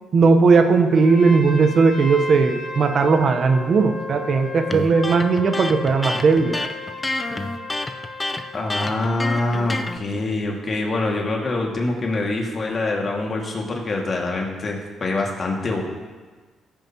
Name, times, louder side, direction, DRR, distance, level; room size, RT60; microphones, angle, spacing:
voice 1, 0.1-6.6, right 4 dB, 55° right, 6 dB, 1.0 m, -17 dB
Trumpet, 1.0-8.6, left 3 dB, 80° left, 2.7 m, -34 dB
Electric guitar, 4.7-10.0, left 2 dB, 20° left, 0.7 m, -28 dB
voice 2, 8.5-15.8, left 2 dB, 40° left, -1 dB, 2.2 m, -25 dB
16.0 x 8.9 x 3.0 m, 1.4 s
cardioid pair, 90°, 0 cm